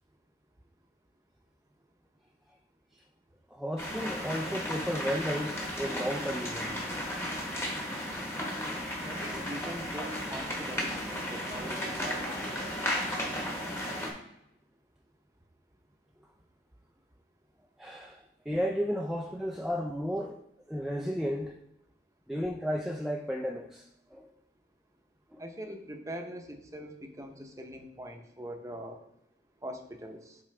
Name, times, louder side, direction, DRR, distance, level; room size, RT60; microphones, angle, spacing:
voice 1, 3.5-6.9 8.1-8.2 9.2-9.4 17.8-20.4 20.7-21.6 22.3-24.3 25.3-25.4, equal, ahead, 1 dB, 0.3 m, -34 dB
sound 1, 3.8-14.1, left 1 dB, 15° left, 1.1 m, -34 dB
voice 2, 9.0-12.8 25.4-29.0 29.6-30.4, right 1 dB, 15° right, 4 dB, 0.7 m, -42 dB
7.4 x 4.6 x 3.3 m, 0.80 s
head